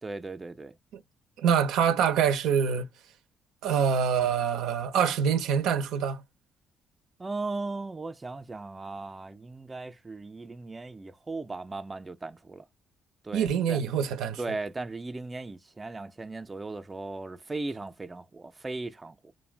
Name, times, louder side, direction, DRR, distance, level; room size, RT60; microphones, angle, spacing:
voice 1, 0.0-0.7 7.2-12.6 13.2-13.8 14.4-19.3, right 3 dB, 25° right, 0.4 m, -37 dB
voice 2, 1.4-2.9 3.6-6.2 13.3-14.4, right 7 dB, 80° right, 0.5 m, -25 dB
2.4 x 2.2 x 3.2 m
supercardioid pair, 60°, 0 cm